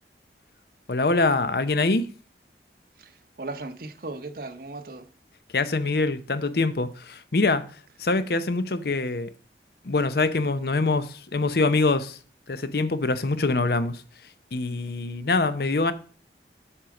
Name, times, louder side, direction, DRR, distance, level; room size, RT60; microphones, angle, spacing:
voice 1, 0.9-2.1 5.5-9.3 9.8-12.2 12.5-14.0 14.5-15.9, left 3 dB, 60° left, 0.7 m, -24 dB
voice 2, 3.0-5.1, right 2 dB, 55° right, 0.9 m, -37 dB
7.3 x 6.4 x 4.9 m
head